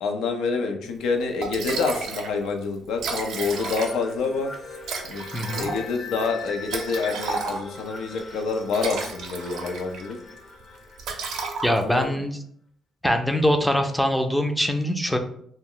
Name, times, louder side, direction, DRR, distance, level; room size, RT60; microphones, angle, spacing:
voice 1, 0.0-4.5 5.1-5.3 5.6-10.2 11.8-12.1, left 4 dB, 85° left, 4 dB, 0.4 m, -27 dB
Liquid, 1.0-1.1 1.4-2.3 2.6-2.7 2.9-4.2 4.8-7.9 8.5-10.1 10.4-10.6 11.0-12.0, right 4 dB, 80° right, 0.5 m, -32 dB
sound 1, 3.1-11.7, left 4 dB, 45° left, 0.7 m, -41 dB
voice 2, 5.3-5.7 11.6-12.4 13.0-15.2, equal, ahead, 5 dB, 0.4 m, -23 dB
2.2 x 2.1 x 3.7 m, 0.64 s
cardioid pair, 90°, 0 cm